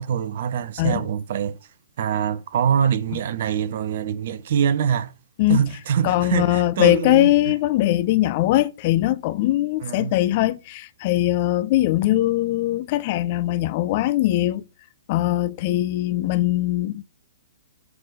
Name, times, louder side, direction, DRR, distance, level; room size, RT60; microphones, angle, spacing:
voice 1, 0.0-1.6 2.0-5.1 5.5-7.3 9.8-10.2, right 8 dB, 50° right, 0.8 m, -24 dB
voice 2, 6.0-14.6 15.1-17.0, left 15 dB, 40° left, 0.6 m, -21 dB
7.8 x 3.7 x 6.5 m
figure-of-eight pair, 115°, 0 cm